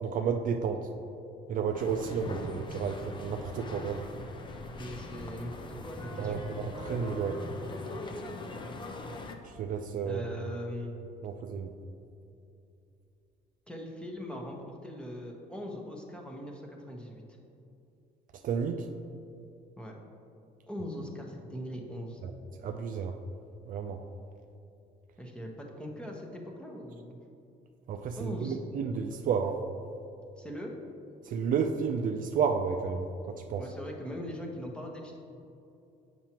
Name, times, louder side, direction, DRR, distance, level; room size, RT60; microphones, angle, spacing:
voice 1, 0.0-0.9 1.5-2.4 2.7-4.1 6.2-7.4 9.6-10.2 11.2-11.7 18.4-18.8 22.2-22.3 22.6-23.2 23.7-24.0 27.9-29.6 31.3-33.6, right 6 dB, 55° right, 6 dB, 0.4 m, -31 dB
sound 1, 1.7-9.3, left 2 dB, 30° left, 0.6 m, -41 dB
voice 2, 4.8-6.5 10.0-10.9 13.7-17.4 19.8-19.9 20.7-22.2 25.2-27.2 28.1-28.6 30.4-30.7 33.6-35.2, equal, 5° left, 0 dB, 0.9 m, -40 dB
7.3 x 5.9 x 2.9 m, 2.7 s
cardioid pair, 110°, 17 cm